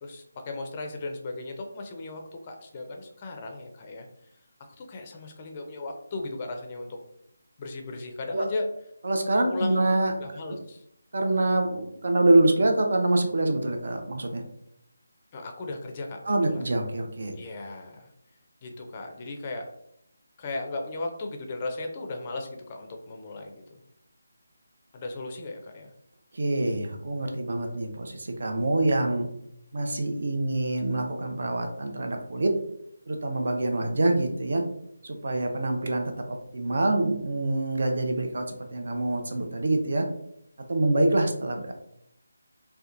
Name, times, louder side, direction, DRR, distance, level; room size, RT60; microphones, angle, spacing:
voice 1, 0.0-4.1 4.8-7.0 7.6-8.7 9.4-10.8 15.3-16.6 17.4-18.1 18.6-19.7 20.4-23.8 24.9-25.9, left 2 dB, 25° left, 3 dB, 0.4 m, -36 dB
voice 2, 9.0-10.1 11.1-14.4 16.3-17.3 26.3-29.3 29.7-32.5 33.1-34.6 35.0-40.1 40.7-41.7, right 2 dB, 60° right, 4 dB, 0.5 m, -25 dB
2.8 x 2.1 x 2.4 m, 0.75 s
figure-of-eight pair, 165°, 0 cm